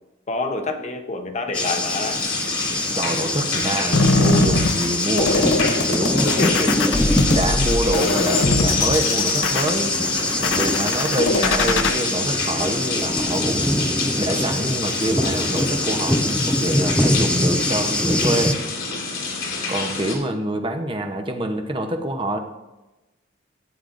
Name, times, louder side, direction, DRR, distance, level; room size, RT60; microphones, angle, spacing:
voice 1, 0.3-2.2 6.4-7.2, left 3 dB, 35° left, 6 dB, 0.9 m, -27 dB
sound 1, 1.5-20.2, left 4 dB, 90° left, 2.4 m, -28 dB
Thunder, 1.5-18.5, left 1 dB, 5° left, 0.5 m, -24 dB
voice 2, 3.0-6.7 7.3-10.0 10.4-13.8 14.2-18.6 19.7-22.4, right 1 dB, 25° right, 5 dB, 0.9 m, -26 dB
sound 2, 3.9-11.9, left 3 dB, 65° left, 0.8 m, -22 dB
15.0 x 9.1 x 2.6 m, 1.0 s
head